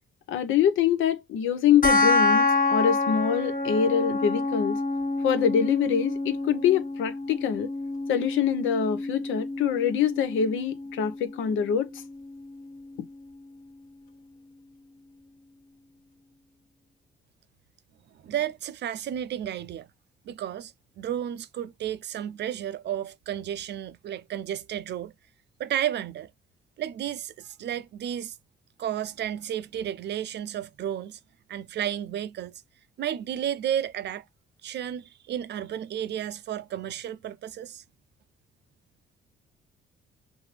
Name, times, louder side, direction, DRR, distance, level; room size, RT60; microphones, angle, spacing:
voice 1, 0.3-4.8 5.2-7.7 8.1-11.9, left 8 dB, 80° left, 0.8 m, -25 dB
sound 1, 1.8-12.8, left 3 dB, 45° left, 1.1 m, -28 dB
voice 2, 18.2-19.9 20.3-25.1 25.6-26.3 26.8-28.4 28.8-31.2 31.5-32.6 33.0-34.2 34.6-37.8, right 10 dB, 60° right, 0.5 m, -32 dB
5.0 x 2.7 x 3.2 m
cardioid pair, 90°, 20 cm